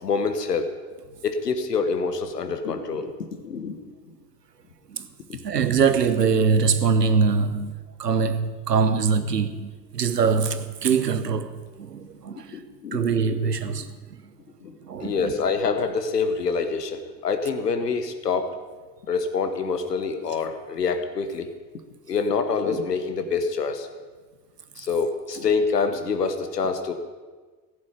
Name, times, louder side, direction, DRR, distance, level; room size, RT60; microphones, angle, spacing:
voice 1, 0.0-0.7 1.2-3.1 3.4-3.8 4.1-4.2 5.3-5.7 12.5-13.1 13.7-13.8 14.6-18.5 19.1-21.5 22.1-23.9 24.8-26.9, left 5 dB, 85° left, 1.3 m, -26 dB
voice 2, 5.4-7.7 8.0-12.6 12.9-13.9 14.8-15.3, right 5 dB, 85° right, 0.9 m, -23 dB
16.0 x 8.3 x 9.9 m
figure-of-eight pair, 55°, 47 cm